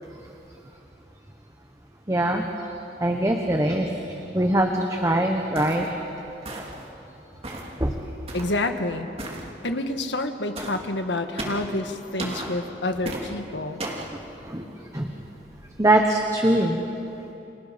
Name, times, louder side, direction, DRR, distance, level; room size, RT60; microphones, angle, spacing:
voice 1, 2.1-2.5 3.0-3.9 4.3-6.0 7.8-7.9 14.4-14.7 14.9-15.1 15.8-16.8, right 1 dB, 20° right, 3 dB, 1.3 m, -22 dB
sound 1, 5.5-5.9 6.4-6.9 7.4-7.7 8.3-8.6 9.2-9.4 10.5-10.8 11.4-11.7 12.2-12.5 13.0-13.3 13.8-14.1, right 1 dB, 35° right, 3.0 m, -34 dB
voice 2, 8.3-9.1 9.6-13.8, left 2 dB, 80° left, 7 dB, 1.6 m, -28 dB
30.0 x 26.5 x 5.3 m, 3.0 s
head